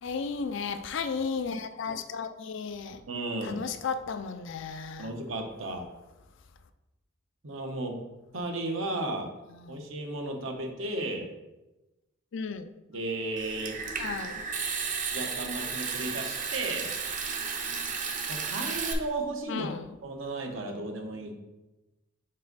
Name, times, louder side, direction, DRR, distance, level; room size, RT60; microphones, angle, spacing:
voice 1, 0.0-3.0 3.4-5.1 9.5-9.8 12.3-12.7 14.0-14.4 19.5-19.9, left 5 dB, 65° left, 0.4 m, -34 dB
voice 2, 3.1-3.6 5.0-5.9 7.4-7.9 8.3-9.3 9.7-11.3 12.9-13.8 15.1-16.9 18.3-19.7 20.0-21.3, right 2 dB, 75° right, 1.0 m, -34 dB
Water tap faucet / Sink (filling or washing) / Trickle dribble, 13.4-18.9, right 5 dB, 40° right, 0.7 m, -33 dB
5.4 x 4.4 x 3.9 m
head